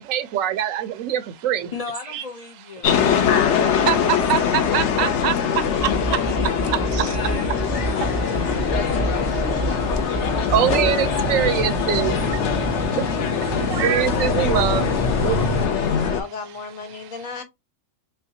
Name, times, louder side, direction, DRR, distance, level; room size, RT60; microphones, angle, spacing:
voice 1, 0.0-1.7 2.1-2.2 3.0-3.4 3.8-6.2 6.7-7.2 8.0-13.2 13.7-16.1, right 11 dB, 80° right, 1.0 m, -25 dB
voice 2, 1.7-4.0 4.5-5.2 5.9-9.5 10.9-11.5 13.1-13.7 14.0-14.3, left 4 dB, 50° left, 0.4 m, -38 dB
sound 1, 2.8-16.2, left 7 dB, 65° left, 0.9 m, -22 dB
sound 2, 5.8-12.9, right 2 dB, 10° left, 0.9 m, -29 dB
sound 3, 6.6-15.7, right 5 dB, 35° right, 0.6 m, -31 dB
voice 3, 15.8-17.4, left 5 dB, 85° left, 1.4 m, -35 dB
3.3 x 3.2 x 2.7 m
omnidirectional pair, 1.4 m